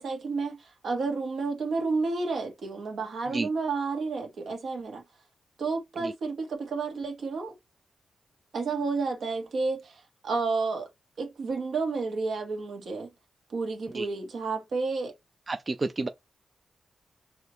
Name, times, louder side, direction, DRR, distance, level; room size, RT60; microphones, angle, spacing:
voice 1, 0.0-5.0 5.6-7.5 8.5-10.9 11.2-13.1 13.5-15.1, right 4 dB, 70° right, 1.6 m, -31 dB
voice 2, 15.5-16.1, right 3 dB, 35° right, 0.4 m, -31 dB
4.9 x 2.8 x 3.1 m
cardioid pair, 65°, 0 cm